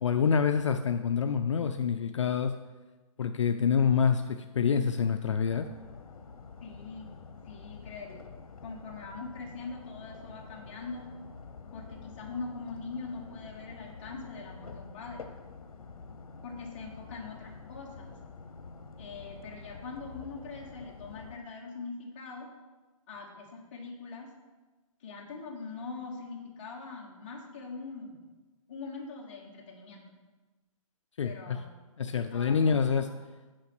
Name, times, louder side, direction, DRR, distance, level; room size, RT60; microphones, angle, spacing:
voice 1, 0.0-2.5 3.2-5.7 31.2-31.6 32.0-33.1, left 6 dB, 60° left, 7 dB, 0.4 m, -26 dB
sound 1, 5.5-21.4, left 4 dB, 80° left, 0.8 m, -48 dB
voice 2, 6.6-7.1 7.4-8.3 8.6-11.1 11.7-15.3 16.4-18.1 19.0-22.5 23.1-24.3 25.0-28.2 28.7-30.0 31.2-31.7 32.3-33.1, left 4 dB, 20° left, -2 dB, 1.1 m, -42 dB
8.9 x 4.9 x 6.0 m, 1.2 s
hypercardioid pair, 175°, 18 cm